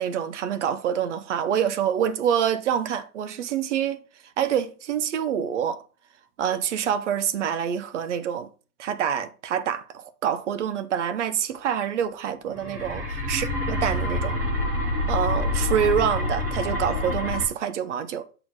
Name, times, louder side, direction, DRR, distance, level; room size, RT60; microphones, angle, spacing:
voice 1, 0.0-4.0 4.4-5.8 6.4-8.5 8.8-14.4 15.1-18.3, right 9 dB, 55° right, 0.7 m, -26 dB
sound 1, 12.5-17.5, left 1 dB, 15° right, 0.5 m, -27 dB
6.7 x 4.3 x 4.5 m
hypercardioid pair, 165°, 44 cm